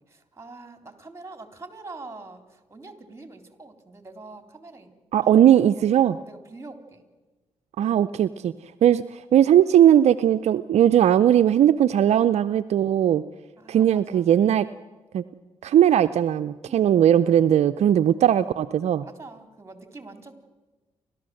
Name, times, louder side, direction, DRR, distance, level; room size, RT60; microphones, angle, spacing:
voice 1, 0.1-4.9 5.2-5.7 5.9-7.0 13.6-14.3 16.6-17.0 19.0-20.3, right 3 dB, 25° right, 7 dB, 3.8 m, -44 dB
voice 2, 5.1-6.2 7.8-8.5 8.8-13.2 13.7-14.7 15.1-15.2 15.6-19.1, right 10 dB, 65° right, 11 dB, 0.6 m, -19 dB
29.0 x 13.0 x 7.8 m, 1.2 s
supercardioid pair, 50°, 12 cm